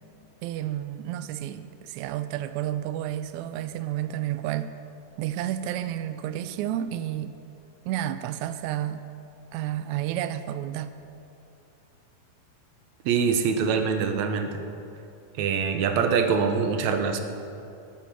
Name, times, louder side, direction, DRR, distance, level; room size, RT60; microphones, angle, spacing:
voice 1, 0.4-4.7 5.2-7.4 7.8-9.0 9.5-10.9, right 12 dB, 90° right, 12 dB, 1.6 m, -31 dB
voice 2, 13.1-14.6 15.4-17.2, right 6 dB, 65° right, 6 dB, 2.0 m, -24 dB
13.0 x 11.5 x 6.2 m, 2.7 s
omnidirectional pair, 3.8 m